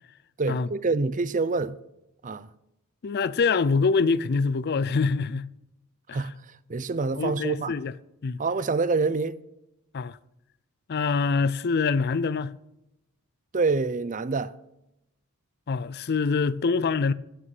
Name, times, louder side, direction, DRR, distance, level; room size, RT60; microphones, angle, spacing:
voice 1, 0.4-1.8 2.2-2.5 6.1-6.3 6.7-7.7 8.4-9.4 13.5-14.5, right 4 dB, 35° right, 0.6 m, -26 dB
voice 2, 3.0-5.5 6.1-6.3 7.2-7.9 8.2-8.4 9.9-10.2 10.9-12.5 15.7-17.1, left 4 dB, 50° left, 0.5 m, -25 dB
16.5 x 6.3 x 6.0 m
head